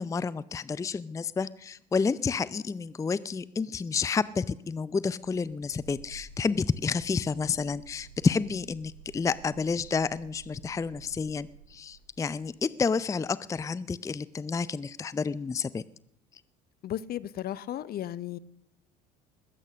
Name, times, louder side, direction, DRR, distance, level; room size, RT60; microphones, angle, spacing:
voice 1, 0.0-15.8, left 5 dB, 15° left, 0.5 m, -30 dB
sound 1, 5.1-12.5, right 8 dB, 80° right, 1.8 m, -52 dB
voice 2, 16.8-18.4, left 12 dB, 45° left, 0.7 m, -34 dB
21.0 x 8.6 x 6.4 m
hypercardioid pair, 70°, 21 cm